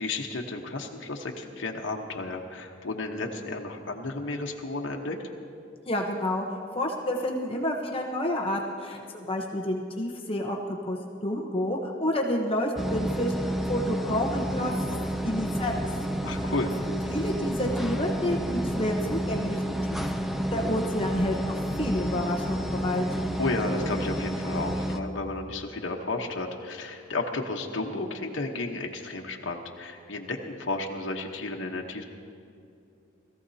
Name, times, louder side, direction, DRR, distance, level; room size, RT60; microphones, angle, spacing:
voice 1, 0.0-5.2 16.2-16.7 23.4-32.0, left 2 dB, 70° left, 1 dB, 1.1 m, -33 dB
voice 2, 5.9-10.6 10.8-11.0 11.2-14.7 15.2-15.7 17.1-19.6 19.9-20.0 20.2-23.1, left 1 dB, 30° left, 0 dB, 1.0 m, -29 dB
sound 1, 12.8-25.0, right 1 dB, ahead, 0.5 m, -30 dB
21.0 x 14.5 x 2.8 m, 2.6 s
head